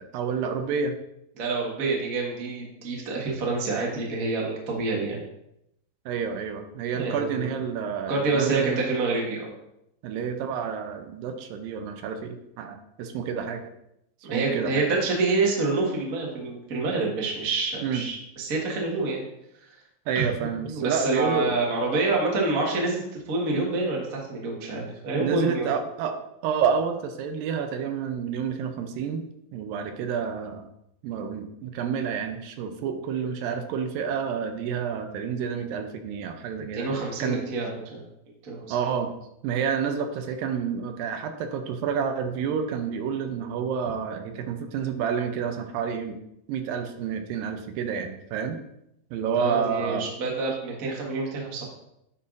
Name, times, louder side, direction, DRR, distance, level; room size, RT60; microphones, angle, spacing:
voice 1, 0.1-1.0 6.1-8.8 10.0-13.6 14.3-14.9 17.8-18.1 20.1-21.5 25.2-26.2 26.4-29.2 29.5-30.7 31.0-36.9 37.2-37.5 38.7-39.1 39.4-46.2 46.5-48.6 49.1-50.0, right 6 dB, 85° right, 6 dB, 2.4 m, -29 dB
voice 2, 1.4-5.2 6.9-7.5 8.1-9.5 14.2-19.2 20.1-20.3 20.6-25.7 36.6-38.0 38.4-38.7 49.3-51.6, right 3 dB, 55° right, -2 dB, 0.9 m, -27 dB
9.7 x 5.5 x 2.5 m, 0.81 s
omnidirectional pair, 4.0 m